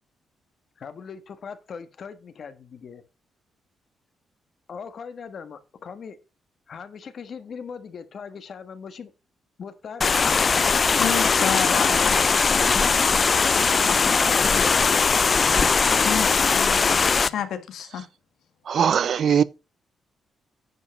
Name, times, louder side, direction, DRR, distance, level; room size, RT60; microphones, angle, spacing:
voice 1, 0.8-3.0 4.7-6.2 6.7-9.1 9.6-11.0 11.8-12.1 12.5-12.6 12.9-15.2, left 6 dB, 50° left, 1.3 m, -39 dB
sound 1, 10.0-17.3, left 5 dB, 35° left, 0.4 m, -20 dB
voice 2, 11.0-12.2 12.5-12.6 16.0-16.8 17.1-18.1 19.3-19.4, left 10 dB, 80° left, 1.7 m, -30 dB
voice 3, 18.7-19.4, right 8 dB, 55° right, 0.5 m, -20 dB
9.6 x 5.3 x 5.3 m
cardioid pair, 135°, 0 cm